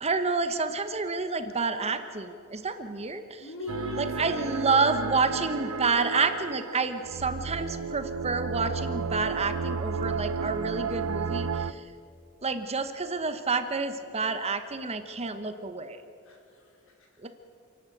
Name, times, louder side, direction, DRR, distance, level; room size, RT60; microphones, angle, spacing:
voice 1, 0.0-3.4 4.0-11.9 12.4-16.0 17.2-17.3, right 4 dB, 30° right, 9 dB, 1.0 m, -29 dB
voice 2, 3.4-5.4 16.2-17.3, left 1 dB, 65° left, 0 dB, 4.7 m, -40 dB
sound 1, 3.7-11.7, right 5 dB, 90° right, 0.7 m, -33 dB
28.0 x 11.5 x 9.1 m, 2.5 s
head